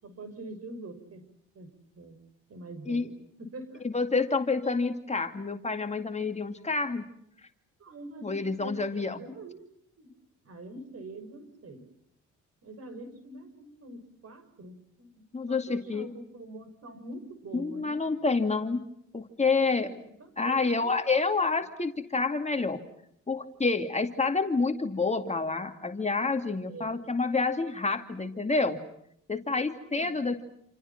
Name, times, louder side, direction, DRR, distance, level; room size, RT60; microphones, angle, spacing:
voice 1, 0.0-1.3 1.5-1.7 2.0-2.2 2.5-3.1 3.4-3.8 7.8-9.7 10.0-10.1 10.4-11.8 12.6-18.0 20.0-21.2 26.6-27.0 29.8-30.4, right 2 dB, 55° right, 10 dB, 6.4 m, -45 dB
voice 2, 3.8-7.0 8.2-9.2 15.3-16.1 17.5-18.8 19.1-20.0 20.4-22.8 23.3-28.8 29.3-30.4, left 4 dB, 20° left, 5 dB, 2.4 m, -28 dB
28.5 x 28.0 x 5.9 m, 0.73 s
cardioid pair, 90°, 30 cm